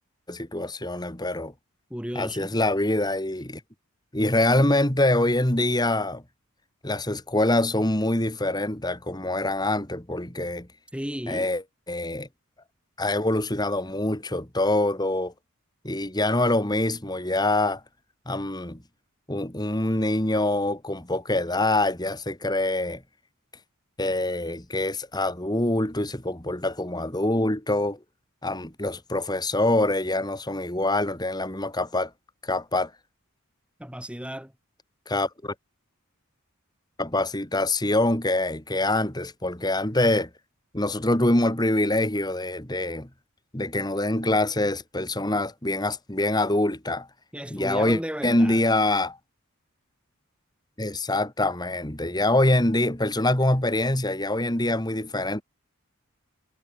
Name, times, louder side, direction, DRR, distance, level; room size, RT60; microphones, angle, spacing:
voice 1, 0.3-1.5 2.1-3.6 4.1-6.2 6.8-10.7 11.3-11.6 11.9-12.3 13.0-15.3 15.8-17.8 18.3-18.8 19.3-23.0 24.0-28.0 28.4-32.1 32.4-32.9 35.1-35.5 37.0-40.3 40.7-43.1 43.5-47.1 47.5-49.2 50.8-55.4, left 1 dB, 20° left, 2.6 m, -25 dB
voice 2, 1.9-2.6 10.9-11.5 33.8-34.5 47.3-48.6, equal, 5° right, 6.2 m, -34 dB
head